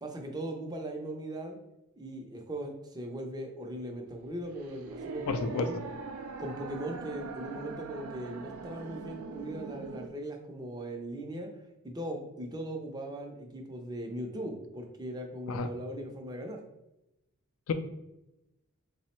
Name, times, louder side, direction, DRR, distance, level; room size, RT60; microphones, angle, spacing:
voice 1, 0.0-1.6 2.0-5.8 6.4-11.5 11.8-16.6, right 1 dB, 20° right, 2 dB, 0.4 m, -39 dB
sound 1, 4.1-10.1, right 4 dB, 85° right, 0.4 m, -42 dB
voice 2, 5.3-5.7 15.5-15.7 17.7-17.8, left 4 dB, 75° left, 8 dB, 0.4 m, -30 dB
3.5 x 2.0 x 4.2 m, 0.93 s
head